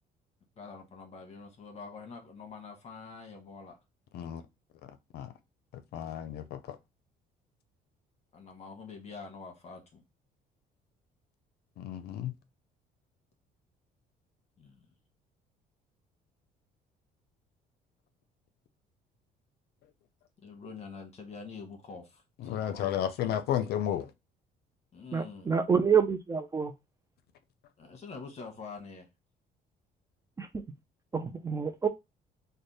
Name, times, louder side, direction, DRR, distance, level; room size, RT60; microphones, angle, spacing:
voice 1, 0.6-3.8 8.3-10.0 14.6-14.9 20.4-23.4 24.9-25.6 27.8-29.1, left 4 dB, 40° left, 1.0 m, -46 dB
voice 2, 5.9-6.8 11.8-12.3 22.4-24.1, left 10 dB, 70° left, 0.5 m, -32 dB
voice 3, 25.1-26.7 30.4-30.5 31.1-31.9, right 6 dB, 20° right, 0.4 m, -27 dB
3.2 x 2.1 x 4.0 m
cardioid pair, 110°, 17 cm